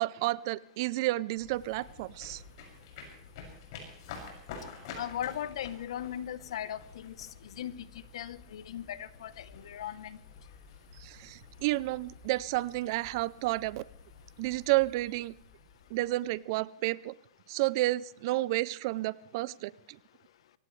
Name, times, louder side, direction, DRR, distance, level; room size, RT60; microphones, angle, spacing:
voice 1, 0.0-2.4 11.0-13.8 14.4-15.3 15.9-17.1 17.5-20.0, right 18 dB, 50° right, 20 dB, 0.5 m, -31 dB
sound 1, 1.4-16.5, left 5 dB, 55° left, 6.8 m, -50 dB
voice 2, 4.9-7.8 8.1-10.2, left 10 dB, 75° left, 15 dB, 1.0 m, -38 dB
24.0 x 17.0 x 3.3 m, 0.69 s
supercardioid pair, 155°, 3 cm